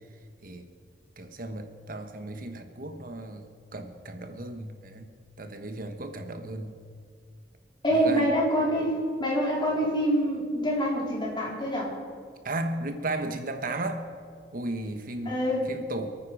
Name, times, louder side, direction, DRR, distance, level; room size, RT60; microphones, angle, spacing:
voice 1, 1.2-3.5 3.7-5.1 5.4-6.8 7.9-8.3 12.4-14.1 14.5-15.4 15.7-16.1, right 2 dB, 55° right, 7 dB, 1.3 m, -35 dB
voice 2, 7.8-11.9 15.3-15.7, equal, 25° left, -4 dB, 4.0 m, -26 dB
27.0 x 9.4 x 4.9 m, 2.2 s
head